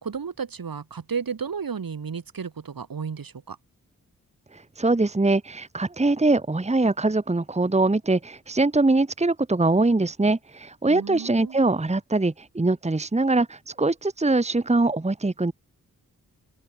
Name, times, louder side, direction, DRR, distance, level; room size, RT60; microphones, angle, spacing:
voice 1, 0.0-3.6 10.9-11.6, right 6 dB, 75° right, 5.7 m, -33 dB
voice 2, 4.5-15.5, right 2 dB, 20° right, 1.3 m, -23 dB
open air
cardioid pair, 50°, 34 cm